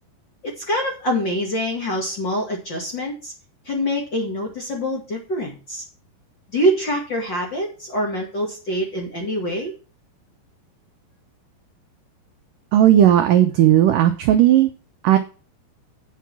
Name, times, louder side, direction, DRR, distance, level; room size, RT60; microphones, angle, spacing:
voice 1, 0.4-3.3 3.7-5.8 6.5-9.7, equal, 40° left, 0 dB, 1.9 m, -25 dB
voice 2, 12.7-14.7 15.0-15.2, right 11 dB, 90° right, 7 dB, 1.9 m, -15 dB
9.3 x 6.0 x 5.9 m, 0.34 s
omnidirectional pair, 4.8 m